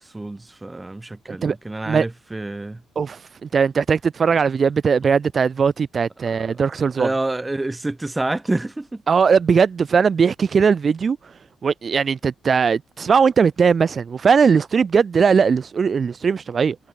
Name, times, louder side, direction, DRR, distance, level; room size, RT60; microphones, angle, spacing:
voice 1, 0.1-2.8 6.3-6.4 6.9-9.0, right 2 dB, 15° right, 3.8 m, -27 dB
voice 2, 2.9-7.1 9.1-11.2 11.6-16.8, right 6 dB, 45° right, 1.3 m, -19 dB
cardioid pair, 90°, 0 cm